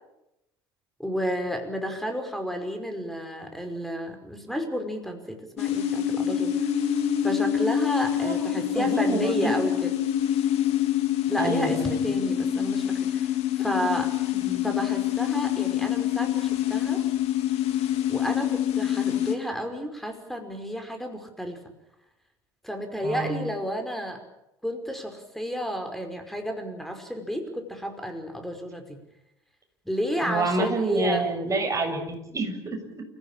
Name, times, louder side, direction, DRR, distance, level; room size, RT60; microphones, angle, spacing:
voice 1, 1.0-6.7 7.2-9.9 11.3-14.1 14.6-17.0 18.1-21.6 22.6-24.2 24.6-29.0 29.9-31.2, equal, ahead, 5 dB, 5.3 m, -31 dB
sound 1, 5.6-19.3, left 10 dB, 55° left, 3.1 m, -26 dB
voice 2, 8.2-9.5 11.4-12.0 14.3-14.7 23.0-23.4 30.2-33.0, right 2 dB, 25° right, 4 dB, 7.2 m, -28 dB
28.5 x 16.0 x 8.9 m, 0.85 s
figure-of-eight pair, 65°, 13 cm